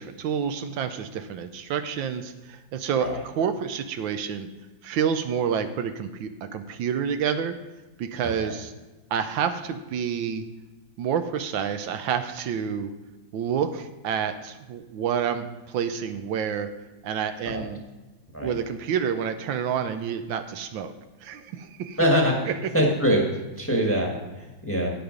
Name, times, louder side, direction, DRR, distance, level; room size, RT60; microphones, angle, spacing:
voice 1, 0.0-4.5 4.8-7.6 8.0-8.7 9.1-10.5 11.0-12.9 13.3-16.7 17.0-17.8 18.4-20.9 21.2-22.0, right 7 dB, 80° right, 9 dB, 1.4 m, -28 dB
voice 2, 8.2-8.5 17.4-17.6 18.3-18.5 22.0-22.3 22.7-23.2 23.6-24.9, equal, 10° left, -1 dB, 1.1 m, -23 dB
9.4 x 6.9 x 5.0 m, 1.1 s
omnidirectional pair, 2.1 m